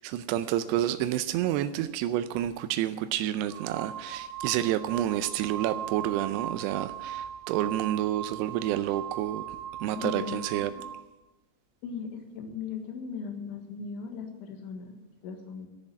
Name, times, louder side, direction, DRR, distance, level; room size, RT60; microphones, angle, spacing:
voice 1, 0.0-9.4 9.8-10.7, right 12 dB, 85° right, 2.4 m, -29 dB
sound 1, 3.3-11.0, right 10 dB, 40° right, 3.2 m, -39 dB
voice 2, 10.0-10.4 10.7-10.8 11.8-15.0 15.2-15.7, left 5 dB, 85° left, 3.9 m, -38 dB
13.0 x 7.1 x 9.9 m
omnidirectional pair, 5.3 m